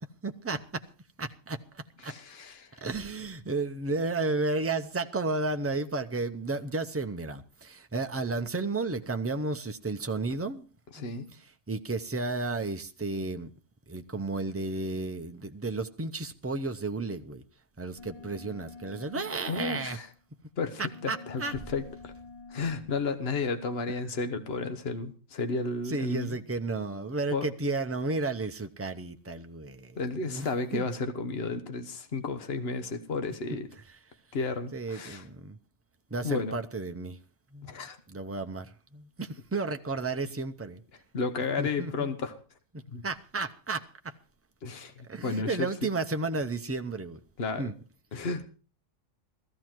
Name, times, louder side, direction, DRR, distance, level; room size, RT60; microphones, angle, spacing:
voice 1, 0.2-0.8 1.2-2.1 2.8-10.7 11.0-13.5 13.9-17.4 17.8-20.0 21.1-21.7 25.9-30.5 30.7-30.9 33.5-33.6 34.7-35.6 36.1-37.2 37.5-37.8 38.1-40.8 41.6-42.1 43.0-44.2 45.1-47.2 47.6-47.7, right 3 dB, 15° right, 0.6 m, -33 dB
voice 2, 2.0-2.7 10.9-11.3 19.1-20.1 20.6-21.4 21.7-22.1 22.5-26.4 27.3-27.5 30.0-33.7 34.3-35.2 36.2-36.6 37.6-38.0 41.1-42.4 42.9-43.0 44.6-45.7 47.4-47.7 48.1-48.5, left 4 dB, 60° left, 1.4 m, -32 dB
sound 1, 18.0-20.2 20.9-23.6, left 4 dB, 25° left, 0.9 m, -49 dB
15.0 x 14.5 x 4.5 m
omnidirectional pair, 1.2 m